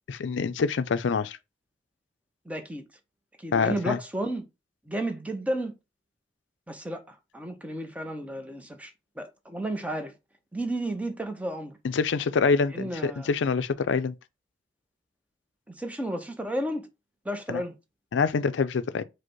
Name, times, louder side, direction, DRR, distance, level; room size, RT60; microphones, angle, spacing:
voice 1, 0.1-1.4 3.5-4.0 11.8-14.1 17.5-17.6 18.1-19.0, left 5 dB, 75° left, 0.4 m, -26 dB
voice 2, 2.5-2.8 3.4-4.5 4.9-5.7 6.7-8.9 9.2-10.1 10.5-11.8 12.7-13.3 15.7-16.9 17.2-17.7, right 1 dB, 10° right, 0.6 m, -32 dB
4.9 x 2.1 x 4.5 m
head